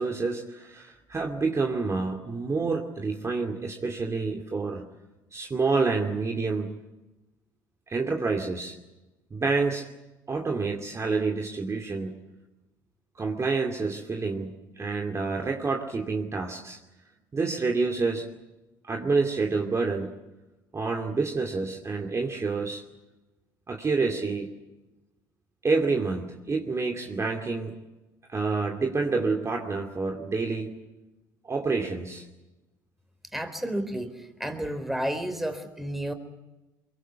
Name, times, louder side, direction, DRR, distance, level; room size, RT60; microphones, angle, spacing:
voice 1, 0.0-4.8 5.3-6.7 7.9-8.8 9.3-9.9 10.3-12.1 13.2-16.8 17.3-18.3 18.8-20.1 20.7-22.8 23.7-24.5 25.6-27.7 28.3-30.7 31.4-32.2, right 4 dB, 30° right, 2 dB, 2.6 m, -28 dB
voice 2, 33.3-36.1, right 1 dB, ahead, 6 dB, 4.3 m, -31 dB
23.0 x 23.0 x 8.3 m, 1.0 s
hypercardioid pair, 65°, 10 cm